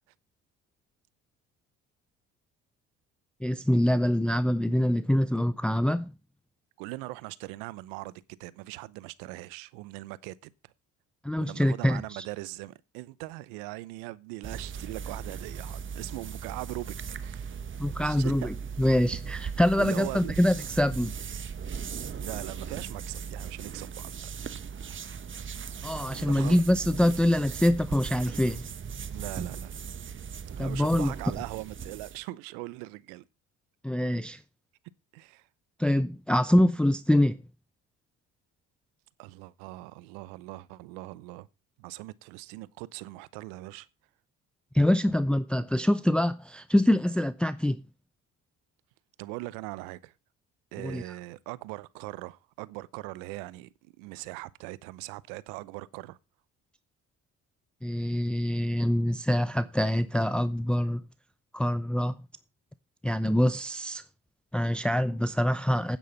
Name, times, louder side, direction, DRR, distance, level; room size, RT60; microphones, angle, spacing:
voice 1, 3.4-6.1 11.2-12.2 17.8-21.1 25.8-28.7 30.6-31.1 33.8-34.4 35.8-37.4 44.7-47.8 50.8-51.1 57.8-61.0 61.5-62.2 63.0-64.0 64.5-66.0, left 1 dB, 5° left, 0.6 m, -25 dB
voice 2, 6.8-10.5 11.4-17.6 18.0-18.5 19.8-20.3 22.2-24.2 26.3-26.6 29.1-29.8 30.6-33.2 35.1-35.5 39.2-41.5 41.8-43.9 49.2-50.1 50.7-56.2, right 19 dB, 85° right, 0.8 m, -40 dB
sound 1, 14.4-32.2, right 6 dB, 35° right, 1.1 m, -38 dB
9.3 x 9.2 x 5.5 m
supercardioid pair, 70°, 33 cm